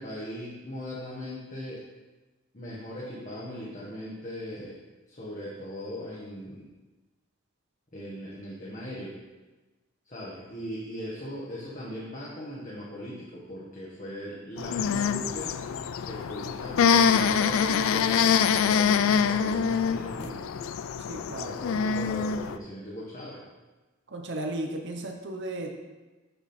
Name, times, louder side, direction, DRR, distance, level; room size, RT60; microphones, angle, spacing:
voice 1, 0.0-1.8 2.5-4.8 5.1-6.7 7.9-9.2 10.0-20.4 21.4-23.4, equal, 35° left, -6 dB, 1.1 m, -39 dB
sound 1, 14.6-22.6, left 7 dB, 65° left, 0.3 m, -25 dB
voice 2, 21.1-21.6 24.1-25.7, right 1 dB, 55° right, 3 dB, 0.8 m, -35 dB
6.7 x 6.2 x 4.3 m, 1.2 s
head